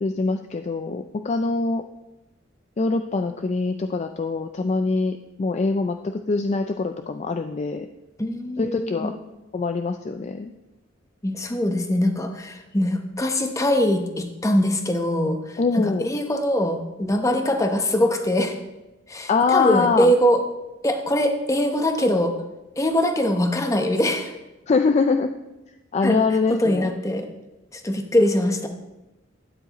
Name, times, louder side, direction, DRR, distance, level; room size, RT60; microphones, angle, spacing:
voice 1, 0.0-1.8 2.8-7.9 8.6-9.2 9.5-10.5 15.6-16.1 19.3-20.1 24.7-25.3 25.9-26.9, left 4 dB, 35° left, 7 dB, 0.3 m, -23 dB
voice 2, 8.2-9.1 11.2-18.6 19.1-20.4 20.8-22.3 22.8-24.3 26.0-26.2 26.5-27.3 27.7-28.7, left 1 dB, 15° left, 5 dB, 0.9 m, -22 dB
12.0 x 9.4 x 3.0 m, 1.0 s
head